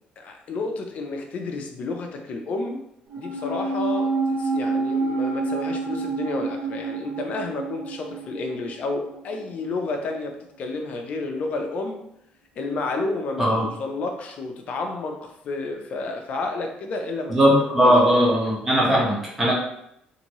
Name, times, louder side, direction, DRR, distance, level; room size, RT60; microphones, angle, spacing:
voice 1, 0.2-2.8 3.2-12.0 12.6-18.3, left 3 dB, 50° left, 3 dB, 0.5 m, -31 dB
sound 1, 3.1-9.7 9.9-10.0, right 3 dB, 80° right, 1.1 m, -28 dB
voice 2, 17.3-19.5, equal, 10° right, -5 dB, 1.0 m, -19 dB
2.8 x 2.6 x 2.9 m, 0.77 s
cardioid pair, 140°, 3 cm